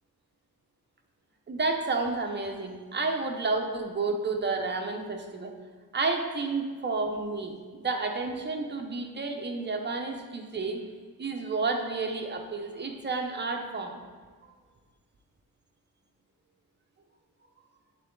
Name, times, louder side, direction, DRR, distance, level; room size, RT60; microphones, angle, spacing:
voice 1, 1.5-5.5 5.9-10.8 11.2-14.0 14.4-14.5, right 3 dB, 30° right, 2 dB, 0.8 m, -31 dB
8.2 x 4.0 x 3.8 m, 1.5 s
wide cardioid pair, 105°, 37 cm